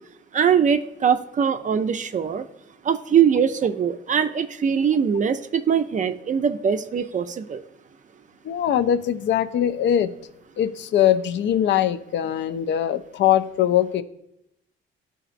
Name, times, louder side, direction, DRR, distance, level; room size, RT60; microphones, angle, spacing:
voice 1, 0.3-2.5 2.8-7.6, right 7 dB, 40° right, 9 dB, 0.4 m, -22 dB
voice 2, 8.4-10.1 10.6-14.0, left 10 dB, 65° left, 12 dB, 0.5 m, -21 dB
11.5 x 4.0 x 2.5 m, 0.80 s
cardioid pair, 90°, 20 cm